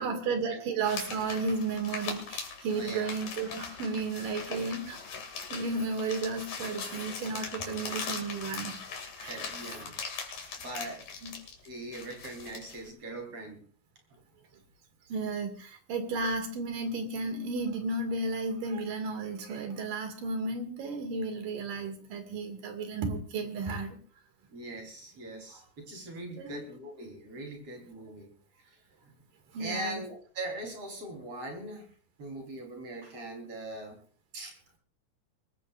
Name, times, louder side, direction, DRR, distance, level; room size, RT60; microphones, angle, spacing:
voice 1, 0.0-5.0 5.5-8.7 9.2-9.5 11.2-11.4 15.1-24.0 25.5-25.6 26.4-26.6 29.5-30.0, right 3 dB, 90° right, 6 dB, 4.0 m, -33 dB
sound 1, 0.8-12.9, left 5 dB, 75° left, 4.1 m, -40 dB
voice 2, 2.7-3.1 9.2-9.9 10.6-11.0 11.6-13.6 24.5-28.3 28.6-28.8 29.6-31.9 32.2-34.0 34.3-34.5, right 1 dB, 45° right, 2 dB, 5.4 m, -41 dB
23.5 x 19.5 x 2.6 m, 0.42 s
omnidirectional pair, 3.7 m